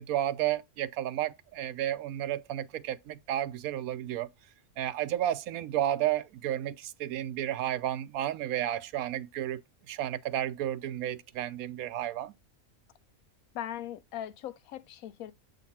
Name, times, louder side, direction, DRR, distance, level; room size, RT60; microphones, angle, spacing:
voice 1, 0.0-4.3 4.8-9.6 9.9-12.3, right 12 dB, 85° right, 1.0 m, -32 dB
voice 2, 13.5-15.3, left 11 dB, 80° left, 1.1 m, -39 dB
7.5 x 4.0 x 4.2 m
omnidirectional pair, 1.5 m